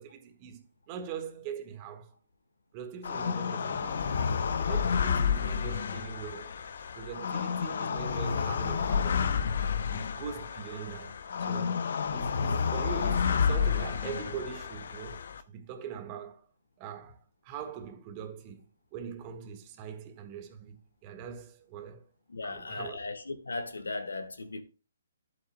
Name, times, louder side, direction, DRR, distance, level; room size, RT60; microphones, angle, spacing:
voice 1, 0.0-2.1 2.7-4.1 4.6-6.6 7.0-9.3 9.9-11.1 11.4-11.8 12.1-16.5 16.8-22.1 22.4-23.0, right 7 dB, 30° right, 1.6 m, -42 dB
sound 1, 3.0-15.4, left 6 dB, 60° left, 0.8 m, -30 dB
voice 2, 22.3-24.6, left 3 dB, 85° left, 1.5 m, -37 dB
11.5 x 8.1 x 2.2 m
figure-of-eight pair, 140°, 0 cm